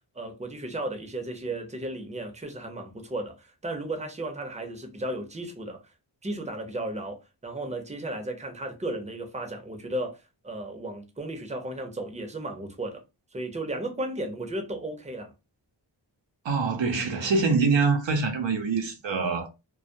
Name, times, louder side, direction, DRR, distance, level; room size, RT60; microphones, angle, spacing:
voice 1, 0.0-5.8 6.2-13.0 13.3-15.3, right 1 dB, 15° right, 0.7 m, -34 dB
voice 2, 16.4-19.5, right 4 dB, 75° right, 0.7 m, -24 dB
2.2 x 2.1 x 2.6 m
cardioid pair, 45°, 45 cm